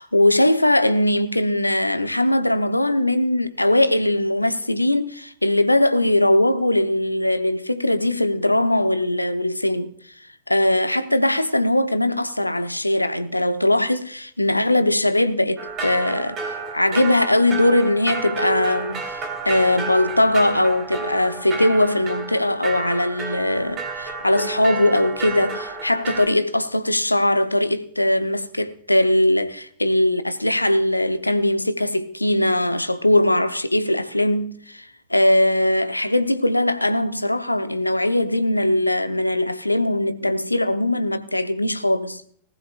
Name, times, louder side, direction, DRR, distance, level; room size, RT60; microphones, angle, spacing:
voice 1, 0.0-9.9 10.5-42.2, left 1 dB, 85° left, 0.7 m, -20 dB
sound 1, 15.6-26.3, right 4 dB, 30° right, 3.1 m, -31 dB
19.5 x 17.0 x 2.3 m
figure-of-eight pair, 90°, 0 cm